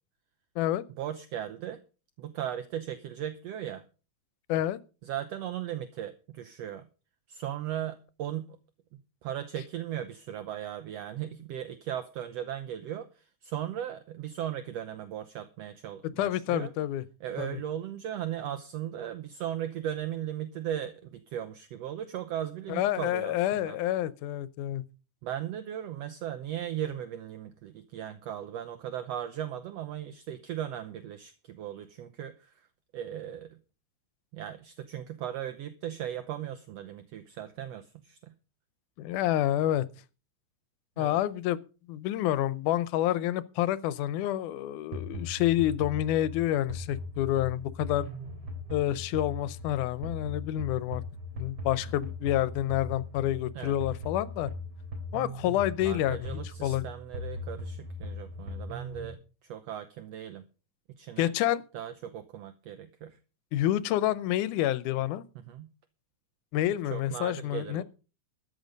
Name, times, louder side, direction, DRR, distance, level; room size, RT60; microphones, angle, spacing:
voice 1, 1.0-1.8 2.2-3.8 5.0-6.9 7.3-8.6 9.2-16.7 17.2-23.8 25.2-32.7 32.9-33.6 34.3-38.3 41.0-41.2 53.5-53.8 55.8-59.2 59.5-60.5 60.9-61.3 61.7-63.2 65.3-65.7 66.8-67.8, right 10 dB, 70° right, 1.7 m, -37 dB
voice 2, 16.2-17.0 17.4-17.6 22.7-24.8 39.0-39.9 41.0-41.6 41.9-48.1 48.7-51.0 51.4-54.5 55.1-56.8 61.2-61.6 63.5-65.2 66.5-67.8, left 13 dB, 85° left, 2.2 m, -28 dB
sound 1, 44.9-59.1, left 2 dB, 50° right, 4.2 m, -39 dB
13.5 x 9.7 x 5.2 m
omnidirectional pair, 3.5 m